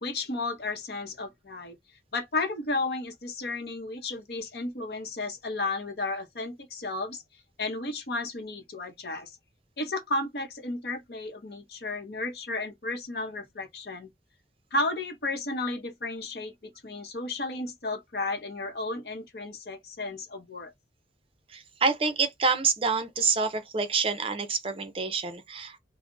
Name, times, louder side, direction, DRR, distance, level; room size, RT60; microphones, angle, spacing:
voice 1, 0.0-1.8 2.1-7.2 7.6-9.3 9.8-14.1 14.7-20.7, left 2 dB, 60° left, 0.8 m, -33 dB
voice 2, 21.5-25.8, right 4 dB, 30° right, 0.5 m, -27 dB
2.4 x 2.0 x 3.7 m
head